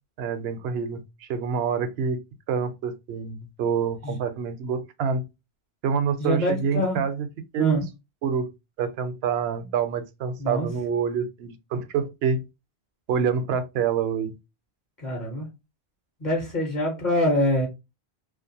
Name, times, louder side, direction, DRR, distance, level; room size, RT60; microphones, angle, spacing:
voice 1, 0.2-2.2 2.5-5.3 5.8-7.3 7.5-7.8 8.2-8.5 8.8-12.5 13.1-14.3, right 6 dB, 70° right, 0.8 m, -27 dB
voice 2, 6.2-7.0 7.6-7.8 10.4-10.7 15.0-15.5 16.2-17.7, left 1 dB, 45° left, 1.0 m, -25 dB
2.5 x 2.3 x 2.7 m
omnidirectional pair, 1.1 m